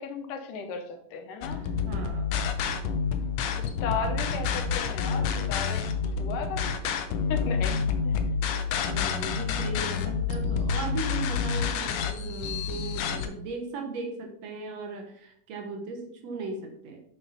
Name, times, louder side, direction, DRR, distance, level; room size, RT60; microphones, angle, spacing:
voice 1, 0.0-1.6 3.6-5.9 6.2-6.7 7.3-7.8 8.1-8.2, left 5 dB, 90° left, 5 dB, 2.6 m, -35 dB
sound 1, 1.4-13.3, left 5 dB, 70° left, 1.7 m, -28 dB
voice 2, 1.4-2.3 8.8-17.0, right 3 dB, 65° right, 2 dB, 1.9 m, -37 dB
5.7 x 5.4 x 5.6 m, 0.67 s
omnidirectional pair, 3.6 m